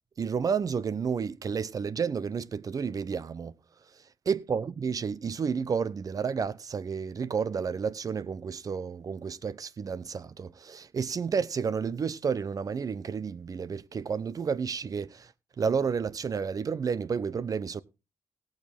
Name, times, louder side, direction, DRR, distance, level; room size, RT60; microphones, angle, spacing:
voice 1, 0.2-3.5 4.3-15.3 15.6-17.8, right 6 dB, 50° right, 0.7 m, -31 dB
18.5 x 6.5 x 3.5 m
cardioid pair, 75°, 8 cm